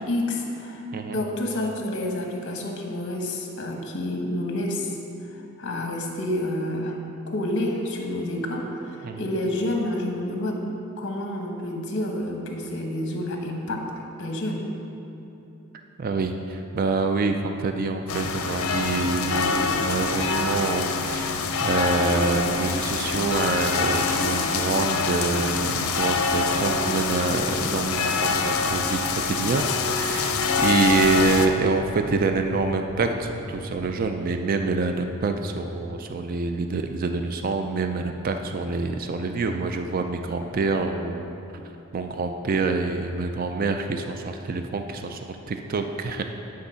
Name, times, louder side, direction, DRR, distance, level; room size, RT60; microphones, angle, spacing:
voice 1, 0.0-0.9 1.1-5.0 5.3-10.6 11.0-13.9 14.2-14.7, left 1 dB, 55° left, 2 dB, 1.0 m, -29 dB
voice 2, 16.0-29.0 29.3-41.4 41.9-46.2, right 3 dB, 40° right, 6 dB, 0.3 m, -26 dB
sound 1, 18.1-31.5, left 4 dB, 85° left, 0.5 m, -25 dB
sound 2, 18.3-34.0, equal, 85° right, 1.4 m, -41 dB
9.7 x 3.7 x 5.6 m, 2.9 s
head